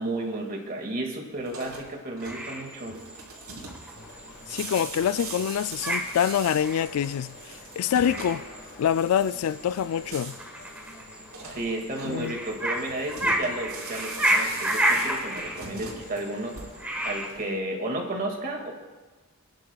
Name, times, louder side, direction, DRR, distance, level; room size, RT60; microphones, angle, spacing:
voice 1, 0.0-3.0 11.5-16.6 17.0-18.7, right 1 dB, 45° right, 2.1 m, -32 dB
sound 1, 1.4-17.0, right 4 dB, 80° right, 3.9 m, -42 dB
sound 2, 2.2-17.3, right 1 dB, 5° right, 1.4 m, -32 dB
sound 3, 3.9-17.6, left 2 dB, 50° left, 1.8 m, -49 dB
voice 2, 4.5-7.3 7.8-8.4 8.8-10.4 12.0-12.4, left 9 dB, 80° left, 0.3 m, -25 dB
28.5 x 10.5 x 2.3 m
head